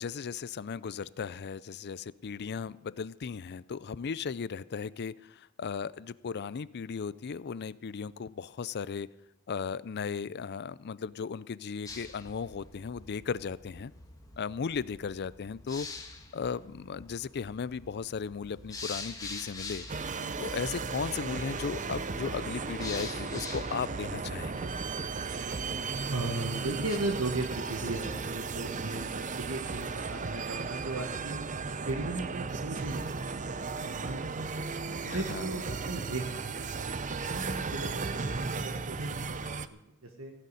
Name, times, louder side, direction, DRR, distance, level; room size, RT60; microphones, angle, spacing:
voice 1, 0.0-9.1 9.5-13.9 14.4-15.9 16.3-19.9 20.4-24.6 35.0-35.5, left 6 dB, 50° left, 18 dB, 0.4 m, -36 dB
sound 1, 11.9-27.0, left 3 dB, 15° left, 1.6 m, -46 dB
sound 2, 19.9-39.7, right 4 dB, 35° right, 0.6 m, -35 dB
voice 2, 26.1-31.4 31.9-33.1 33.4-34.5 35.1-40.3, right 2 dB, 70° right, 3 dB, 1.6 m, -37 dB
16.5 x 6.8 x 9.8 m, 0.94 s
head